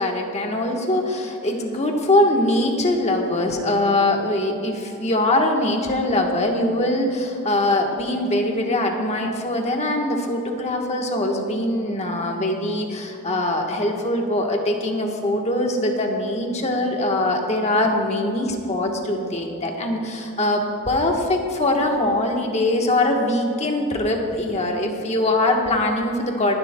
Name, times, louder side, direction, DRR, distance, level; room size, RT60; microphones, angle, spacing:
voice 1, 0.0-26.6, left 1 dB, 30° left, 2 dB, 1.2 m, -22 dB
21.5 x 11.5 x 2.2 m, 2.6 s
head